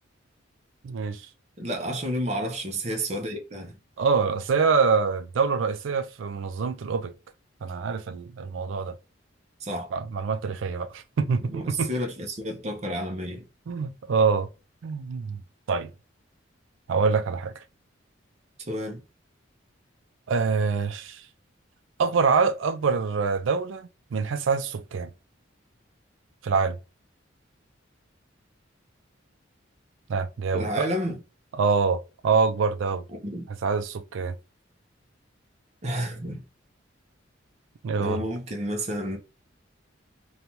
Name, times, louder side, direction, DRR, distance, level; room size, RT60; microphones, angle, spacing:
voice 1, 0.8-1.3 4.0-7.1 7.6-8.9 9.9-11.9 13.7-14.5 14.8-15.4 15.7-15.9 16.9-17.5 20.3-21.2 22.0-25.1 26.4-26.8 30.1-30.9 31.6-33.0 33.5-34.4 37.8-38.2, right 5 dB, 75° right, 0.4 m, -25 dB
voice 2, 1.6-3.8 9.6-9.9 11.4-13.5 18.7-19.0 30.5-31.2 33.2-33.4 35.8-36.4 38.0-39.2, equal, 35° right, 0.6 m, -30 dB
2.7 x 2.2 x 2.9 m
head